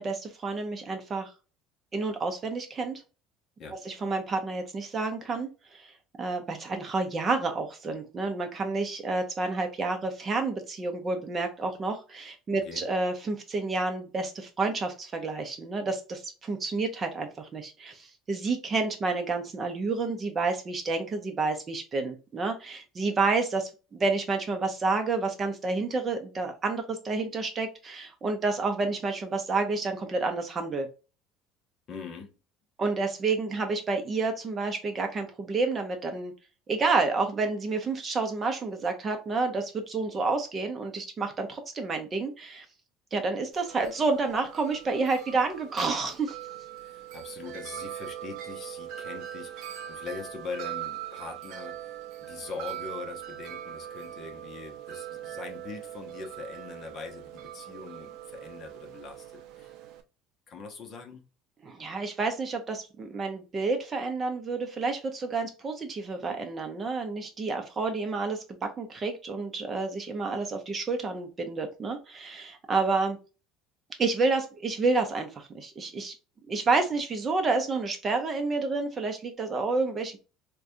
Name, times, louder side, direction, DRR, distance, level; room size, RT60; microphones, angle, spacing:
voice 1, 0.0-1.3 1.9-3.0 3.8-30.9 32.8-36.3 36.7-42.7 43.1-46.4 61.6-73.2 74.0-76.1 76.5-80.2, right 3 dB, 25° right, 0.7 m, -29 dB
voice 2, 12.5-12.8 31.9-32.3 46.7-59.7 60.5-61.3, left 4 dB, 35° left, 0.8 m, -42 dB
Wind chime, 43.5-60.0, right 11 dB, 60° right, 0.6 m, -41 dB
4.8 x 2.3 x 2.6 m
cardioid pair, 160°, 0 cm